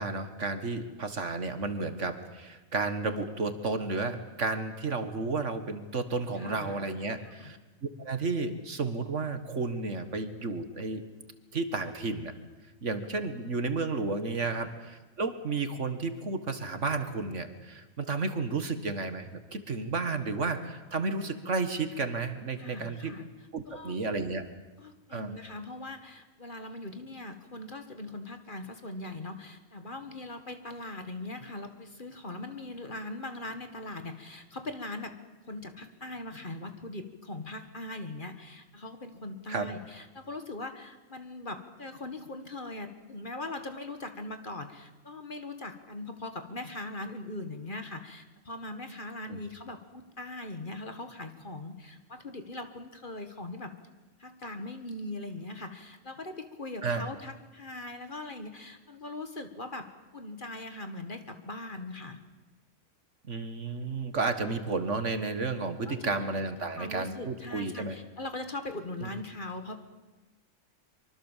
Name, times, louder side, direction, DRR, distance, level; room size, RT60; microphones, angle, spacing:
voice 1, 0.0-7.6 8.0-11.0 11.5-12.3 12.8-23.1 23.5-24.4 25.1-25.4 39.5-39.7 49.3-49.4 56.8-57.0 63.3-67.9 69.0-69.1, right 3 dB, 60° right, 9 dB, 2.0 m, -32 dB
voice 2, 6.3-6.8 7.2-7.5 14.5-14.6 22.6-23.2 23.7-24.0 24.8-35.2 35.5-53.8 54.2-59.9 60.1-62.2 65.9-66.3 66.8-69.8, left 2 dB, 35° left, 7 dB, 1.9 m, -40 dB
24.5 x 24.5 x 7.4 m, 1.1 s
omnidirectional pair, 1.5 m